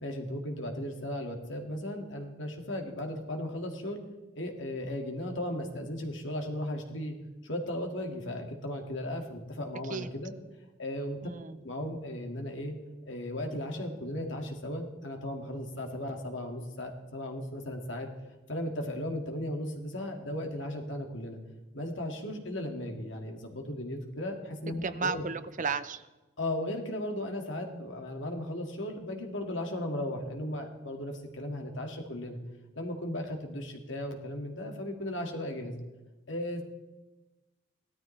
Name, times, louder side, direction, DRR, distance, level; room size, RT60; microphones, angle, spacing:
voice 1, 0.0-4.0 4.4-7.1 7.4-10.3 10.8-11.2 11.6-12.7 13.1-18.1 18.5-21.4 21.7-25.2 26.4-32.4 32.8-35.8 36.3-36.6, left 1 dB, 80° left, 3 dB, 2.1 m, -36 dB
voice 2, 11.2-11.6 24.8-26.0, right 5 dB, 45° right, 12 dB, 0.6 m, -33 dB
17.0 x 13.0 x 3.3 m, 1.1 s
head